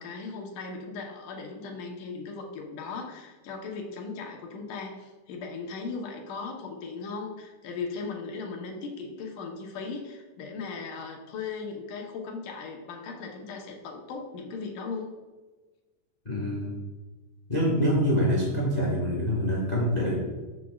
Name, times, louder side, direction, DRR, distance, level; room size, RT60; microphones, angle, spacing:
voice 1, 0.0-15.1, left 4 dB, 80° left, 1 dB, 2.6 m, -37 dB
voice 2, 16.2-16.7 17.5-20.2, equal, 30° left, -5 dB, 0.7 m, -25 dB
13.5 x 6.0 x 2.4 m, 1.3 s
omnidirectional pair, 3.7 m